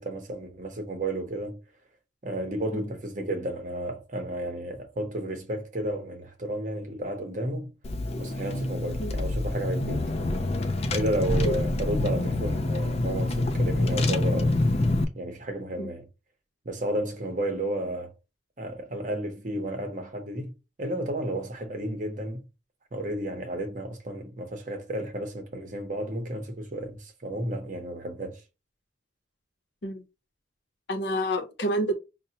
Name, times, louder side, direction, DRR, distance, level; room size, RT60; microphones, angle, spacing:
voice 1, 0.0-1.6 2.2-7.7 8.2-10.1 10.9-14.6 15.1-16.1 16.6-18.1 18.6-22.5 22.9-28.4, right 1 dB, 40° right, 0.8 m, -32 dB
Car / Engine, 7.8-15.0, left 2 dB, 30° left, 0.4 m, -26 dB
voice 2, 30.9-31.9, right 1 dB, 65° left, 0.7 m, -28 dB
5.3 x 2.1 x 2.8 m
head